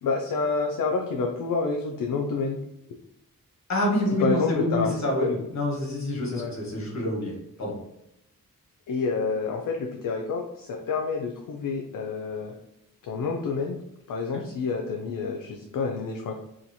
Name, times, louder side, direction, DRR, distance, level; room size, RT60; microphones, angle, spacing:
voice 1, 0.0-2.6 4.2-5.3 6.3-6.5 8.9-12.5 13.0-13.8 14.1-16.4, left 4 dB, 70° left, 1 dB, 0.5 m, -28 dB
voice 2, 3.7-7.3 7.6-7.8 14.3-14.4, left 1 dB, 55° left, -2 dB, 1.2 m, -27 dB
2.9 x 2.3 x 2.6 m, 0.81 s
wide cardioid pair, 80°, 34 cm